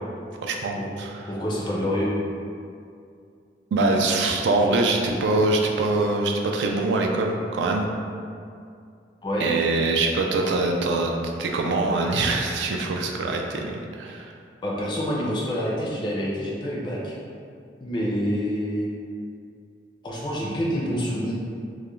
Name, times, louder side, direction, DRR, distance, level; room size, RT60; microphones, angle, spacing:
voice 1, 0.4-1.2 3.7-7.9 9.4-11.1 11.4-14.3, right 2 dB, 75° right, 2 dB, 0.3 m, -23 dB
voice 2, 1.3-2.1 9.2-9.6 14.6-17.2 17.8-18.9 20.0-21.3, equal, 25° left, -4 dB, 0.4 m, -27 dB
2.3 x 2.1 x 3.0 m, 2.4 s
head